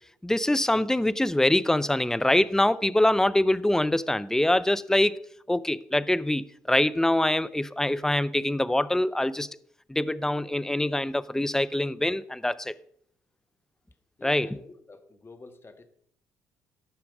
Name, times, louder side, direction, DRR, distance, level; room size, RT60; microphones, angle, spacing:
voice 1, 0.2-5.2 5.5-9.5 9.9-12.7 14.2-14.5, left 1 dB, 5° left, 0.5 m, -24 dB
voice 2, 14.2-15.8, left 3 dB, 30° left, 1.6 m, -49 dB
15.0 x 5.8 x 4.9 m
hypercardioid pair, 55°, 8 cm